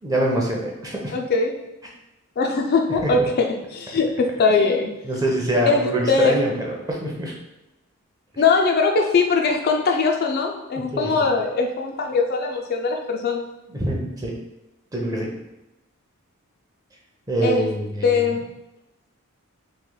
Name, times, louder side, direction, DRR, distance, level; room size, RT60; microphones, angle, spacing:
voice 1, 0.0-1.1 3.0-3.3 5.0-7.3 8.3-8.4 10.8-11.1 13.7-14.3 14.9-15.3 17.3-18.2, right 1 dB, 15° right, -2 dB, 0.6 m, -24 dB
voice 2, 1.1-1.6 2.4-4.9 5.7-6.3 8.4-13.4 17.4-17.6 18.0-18.4, left 4 dB, 45° left, 2 dB, 0.3 m, -21 dB
3.1 x 2.8 x 3.7 m, 0.98 s
head